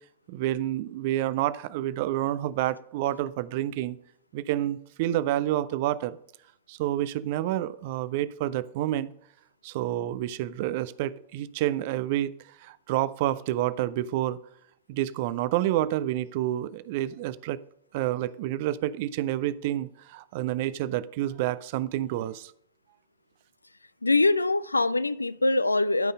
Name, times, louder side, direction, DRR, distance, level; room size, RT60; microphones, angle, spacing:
voice 1, 0.3-4.0 4.3-6.2 6.7-9.1 9.6-14.4 14.9-17.6 17.9-22.5, right 13 dB, 50° right, 0.4 m, -29 dB
voice 2, 24.0-26.1, left 2 dB, 80° left, 0.4 m, -23 dB
12.5 x 5.4 x 5.3 m
figure-of-eight pair, 90°, 0 cm